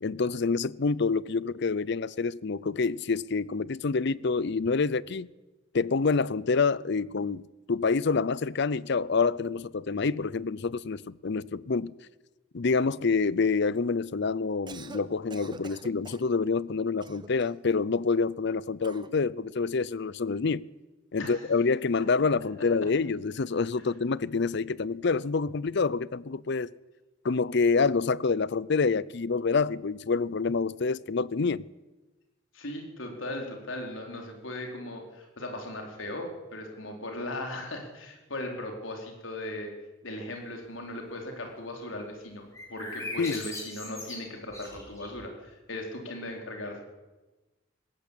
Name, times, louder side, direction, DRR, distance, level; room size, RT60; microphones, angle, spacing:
voice 1, 0.0-5.3 5.7-7.4 7.7-11.9 12.5-20.7 21.1-26.7 27.2-31.6 43.2-43.4, left 4 dB, 60° left, 0.6 m, -27 dB
Cough, 14.5-15.0 15.3-16.3 17.0-17.7 18.8-19.2, right 3 dB, 25° right, 1.0 m, -45 dB
voice 2, 32.5-39.7 40.0-46.8, left 1 dB, 85° left, 4.5 m, -38 dB
sound 1, 42.5-45.2, left 2 dB, 15° left, 6.3 m, -40 dB
19.5 x 17.0 x 8.5 m
head